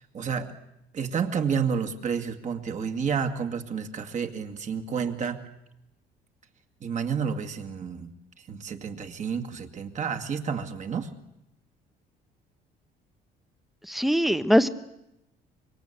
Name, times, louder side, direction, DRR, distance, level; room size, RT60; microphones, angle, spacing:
voice 1, 0.1-0.5 0.9-5.4 6.8-8.1 8.5-11.1, right 6 dB, 45° right, 5 dB, 2.3 m, -30 dB
voice 2, 13.9-14.7, equal, ahead, 11 dB, 1.2 m, -21 dB
25.5 x 23.0 x 8.3 m, 0.84 s
cardioid pair, 110°, 17 cm